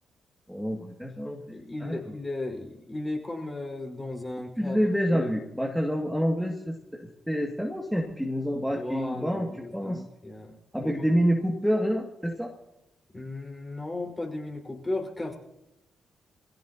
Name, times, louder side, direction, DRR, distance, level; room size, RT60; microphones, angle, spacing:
voice 1, 0.5-1.6 1.8-2.1 4.6-10.0 10.7-12.5, equal, ahead, 0 dB, 2.5 m, -28 dB
voice 2, 1.5-4.8 5.1-5.4 8.7-10.6 10.8-10.9 13.1-15.3, left 2 dB, 25° left, 0 dB, 5.4 m, -35 dB
25.5 x 17.0 x 3.0 m, 0.89 s
hypercardioid pair, 40°, 0 cm